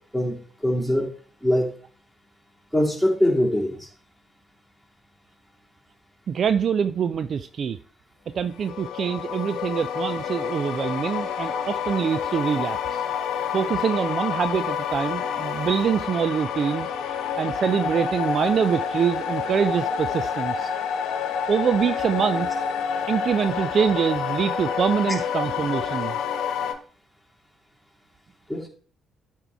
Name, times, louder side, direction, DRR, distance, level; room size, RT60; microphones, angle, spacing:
voice 1, 0.1-1.1 1.4-1.7 2.7-3.9 28.5-28.7, left 1 dB, 5° right, 2.7 m, -23 dB
voice 2, 6.3-7.8 8.3-13.0 13.5-16.9 17.4-20.7 21.5-22.5 23.1-26.2, right 7 dB, 50° right, 0.4 m, -24 dB
sound 1, 8.5-26.7, left 7 dB, 65° left, 0.9 m, -28 dB
11.5 x 4.5 x 3.5 m
figure-of-eight pair, 45°, 0 cm